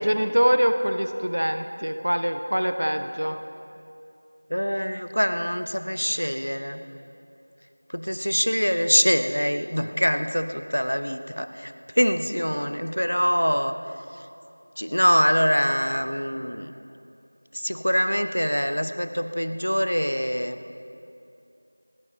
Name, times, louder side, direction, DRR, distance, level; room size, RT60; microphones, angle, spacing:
voice 1, 0.0-3.4, equal, 20° right, 7 dB, 0.4 m, -24 dB
voice 2, 4.5-6.8 7.9-13.7 14.8-16.7 17.5-20.6, equal, 40° left, 9 dB, 0.7 m, -24 dB
28.5 x 9.6 x 5.2 m, 2.7 s
figure-of-eight pair, 180°, 0 cm